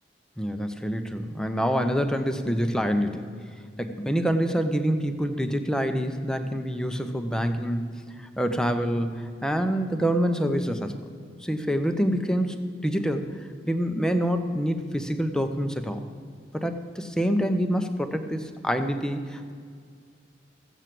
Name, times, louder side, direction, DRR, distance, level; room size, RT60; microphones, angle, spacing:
voice 1, 0.4-3.3 3.8-7.9 8.2-11.1 11.4-16.1 16.5-19.5, equal, 5° left, 7 dB, 0.8 m, -26 dB
15.0 x 8.1 x 7.6 m, 2.2 s
head